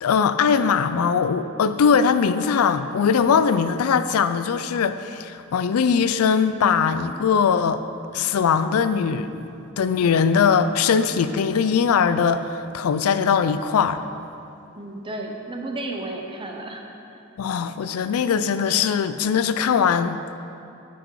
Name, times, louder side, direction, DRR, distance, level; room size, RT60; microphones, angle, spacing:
voice 1, 0.0-7.8 8.1-9.5 9.8-14.1 17.4-20.4, left 6 dB, 85° left, 11 dB, 0.4 m, -21 dB
voice 2, 14.7-16.9, right 2 dB, 25° right, 2 dB, 0.8 m, -32 dB
10.0 x 6.1 x 4.7 m, 2.6 s
head